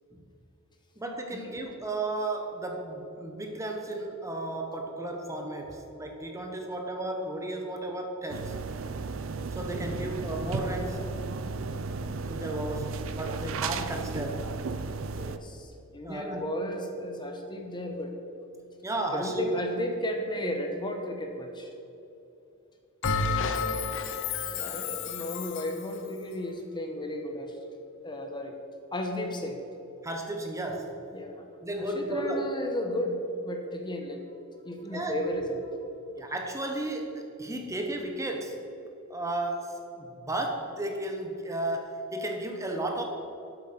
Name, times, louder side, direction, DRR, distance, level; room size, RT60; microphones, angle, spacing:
voice 1, 1.0-8.6 9.5-11.1 12.3-14.5 16.0-16.4 18.8-19.5 30.0-31.0 31.6-32.4 34.9-35.2 36.2-38.6 39.1-43.0, right 1 dB, 15° right, 2 dB, 1.1 m, -34 dB
sound 1, 8.3-15.4, right 3 dB, 65° right, 0.6 m, -34 dB
voice 2, 15.2-18.1 19.1-21.7 24.5-27.7 28.0-28.6 28.9-29.6 31.1-31.5 31.8-34.2 34.6-35.9, left 1 dB, 20° left, 3 dB, 1.1 m, -34 dB
Bell, 23.0-25.8, left 4 dB, 65° left, 0.8 m, -30 dB
11.5 x 8.0 x 5.9 m, 2.9 s
head